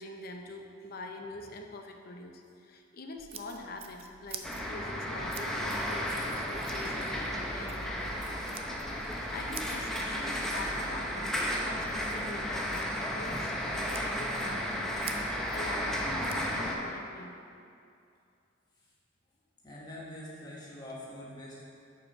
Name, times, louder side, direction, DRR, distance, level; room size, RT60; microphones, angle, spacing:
voice 1, 0.0-8.7 9.1-11.4 11.6-15.0 15.5-17.4, left 2 dB, 50° left, 3 dB, 0.6 m, -44 dB
sound 1, 3.2-16.4, right 6 dB, 30° right, 0.4 m, -50 dB
sound 2, 4.4-16.8, equal, 5° left, 0.7 m, -33 dB
sound 3, 5.7-7.4 7.7-8.6 9.0-10.6, right 2 dB, 65° right, 1.4 m, -53 dB
voice 2, 19.6-21.6, left 1 dB, 20° left, -6 dB, 1.6 m, -44 dB
7.2 x 4.9 x 5.3 m, 2.5 s
head